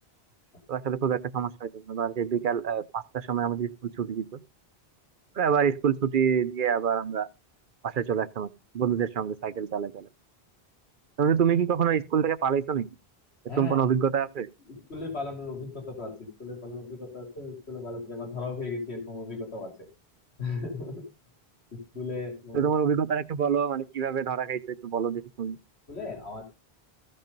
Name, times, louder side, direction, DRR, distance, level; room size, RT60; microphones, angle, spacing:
voice 1, 0.7-4.4 5.4-7.3 7.8-10.1 11.2-12.9 13.6-14.5 22.5-25.6, right 7 dB, 55° right, 0.8 m, -27 dB
voice 2, 13.5-14.0 14.7-19.9 20.4-21.1 21.7-22.7 25.9-26.4, left 3 dB, 85° left, 3.1 m, -36 dB
14.5 x 5.4 x 5.3 m
omnidirectional pair, 1.1 m